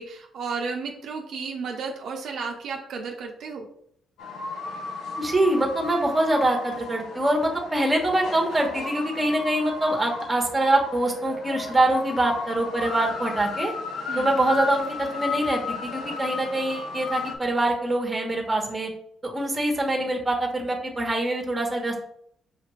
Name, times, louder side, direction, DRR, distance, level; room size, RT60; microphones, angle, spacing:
voice 1, 0.0-3.6 14.1-14.3, right 5 dB, 70° right, 1 dB, 0.6 m, -33 dB
sound 1, 4.2-17.4, left 4 dB, 80° left, 0.7 m, -34 dB
voice 2, 5.2-13.7 14.2-18.9 19.2-22.0, right 1 dB, 15° right, 1 dB, 1.1 m, -24 dB
5.6 x 2.5 x 3.1 m, 0.66 s
cardioid pair, 90°, 0 cm